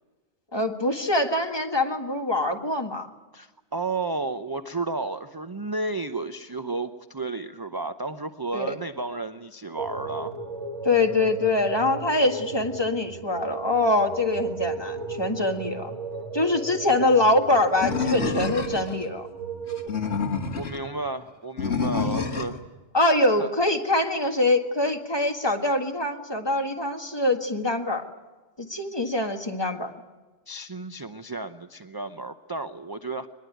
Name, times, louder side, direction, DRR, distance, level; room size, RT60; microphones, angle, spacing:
voice 1, 0.5-3.1 8.5-8.7 10.8-15.9 16.3-19.3 22.9-28.0 28.6-29.9, left 2 dB, 20° left, 4 dB, 1.8 m, -24 dB
voice 2, 3.3-10.3 20.6-22.6 23.4-23.5 29.0-29.1 30.5-33.3, right 3 dB, 25° right, 9 dB, 0.6 m, -32 dB
sound 1, 9.8-19.9, right 4 dB, 70° right, 2.4 m, -35 dB
Animal, 17.8-19.0 19.7-20.8 21.6-22.6, left 5 dB, 65° left, 2.0 m, -27 dB
22.5 x 21.0 x 9.2 m, 1.3 s
omnidirectional pair, 1.2 m